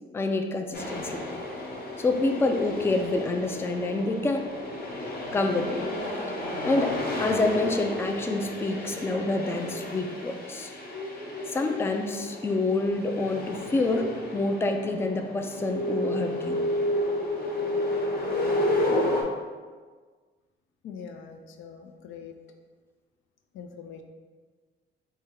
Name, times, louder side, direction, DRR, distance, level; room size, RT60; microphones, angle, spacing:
voice 1, 0.1-1.2 2.0-4.5 5.3-5.8 6.6-6.9 7.2-10.7 11.5-16.6, left 2 dB, 10° left, 4 dB, 0.3 m, -27 dB
sound 1, 0.7-19.2, left 1 dB, 50° left, 0.9 m, -31 dB
voice 2, 20.8-22.4 23.5-24.0, left 6 dB, 85° left, 5 dB, 0.4 m, -43 dB
4.1 x 2.2 x 3.6 m, 1.5 s
cardioid pair, 90°, 20 cm